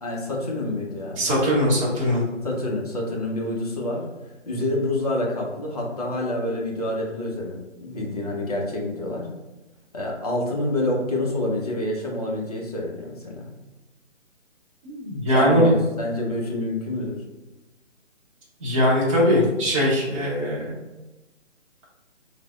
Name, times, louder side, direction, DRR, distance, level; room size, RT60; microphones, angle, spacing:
voice 1, 0.0-1.3 2.4-4.0 4.5-9.3 9.9-13.5 15.3-17.2, left 1 dB, 35° left, -1 dB, 0.5 m, -27 dB
voice 2, 1.2-2.2 14.8-15.7 18.6-20.7, equal, 25° right, -6 dB, 0.8 m, -21 dB
3.2 x 2.0 x 3.4 m, 1.0 s
figure-of-eight pair, 155°, 37 cm